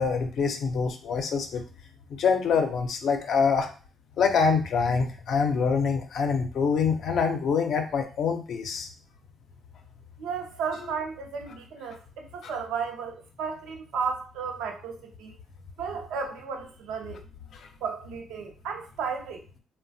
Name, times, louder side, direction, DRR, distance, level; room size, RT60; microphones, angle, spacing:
voice 1, 0.0-1.6 2.2-3.7 4.2-8.9 12.4-12.5, left 5 dB, 70° left, 0.5 m, -25 dB
voice 2, 10.2-15.3 15.8-17.2 17.8-19.4, right 6 dB, 90° right, 0.5 m, -34 dB
3.0 x 2.1 x 2.6 m
cardioid pair, 90°, 0 cm